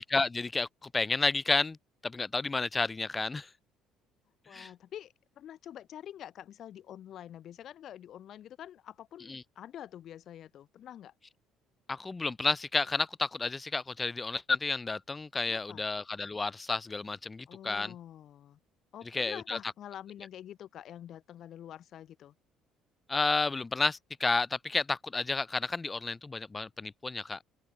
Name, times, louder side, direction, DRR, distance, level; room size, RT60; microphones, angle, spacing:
voice 1, 0.0-1.8 2.0-3.5 4.5-4.7 9.3-9.4 11.9-17.9 19.1-19.6 23.1-27.4, left 3 dB, 25° left, 0.6 m, -31 dB
voice 2, 4.5-11.1 15.5-15.8 17.5-18.6 18.9-22.3, left 11 dB, 60° left, 1.0 m, -47 dB
open air
supercardioid pair, 70°, 0 cm